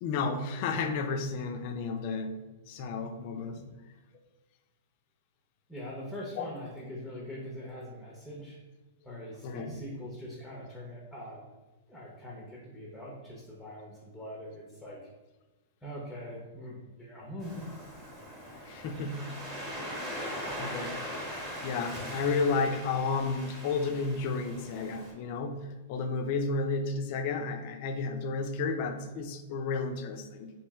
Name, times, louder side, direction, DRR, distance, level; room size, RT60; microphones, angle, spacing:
voice 1, 0.0-2.4 2.7-3.7 6.4-6.5 9.4-9.8 18.6-19.3 20.6-21.3 21.6-30.5, left 4 dB, 45° left, 6 dB, 0.4 m, -32 dB
voice 2, 5.7-8.6 9.0-11.4 11.9-15.1 15.8-17.7, equal, 5° left, -4 dB, 0.6 m, -42 dB
Waves surf, 17.4-25.1, equal, 15° right, 1.0 m, -40 dB
3.0 x 2.6 x 3.5 m, 1.1 s
hypercardioid pair, 145°, 0 cm